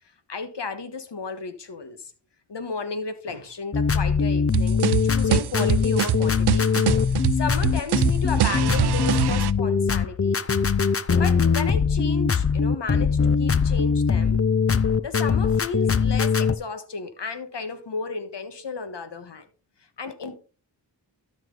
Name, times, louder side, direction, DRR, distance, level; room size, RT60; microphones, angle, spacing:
voice 1, 0.3-2.1 2.5-6.7 7.3-10.4 11.1-14.4 15.0-19.5 20.0-20.4, left 4 dB, 70° left, 1.5 m, -33 dB
sound 1, 3.7-16.6, left 5 dB, 35° left, 0.6 m, -21 dB
sound 2, 4.5-9.5, right 12 dB, 65° right, 0.5 m, -24 dB
12.5 x 6.2 x 3.9 m
cardioid pair, 45°, 43 cm